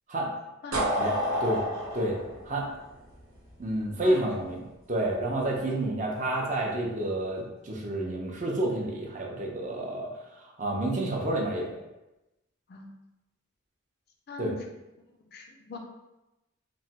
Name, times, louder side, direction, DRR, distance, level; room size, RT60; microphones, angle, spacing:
sound 1, 0.7-3.6, equal, 90° right, 0.8 m, -29 dB
voice 1, 1.0-1.6 1.9-2.2 2.5-2.7 3.6-10.1 10.4-11.8 14.4-14.5, right 1 dB, 35° right, -1 dB, 0.5 m, -29 dB
voice 2, 14.3-14.6 15.3-15.8, left 3 dB, 50° left, 2 dB, 0.3 m, -39 dB
3.0 x 2.1 x 2.8 m, 0.98 s
head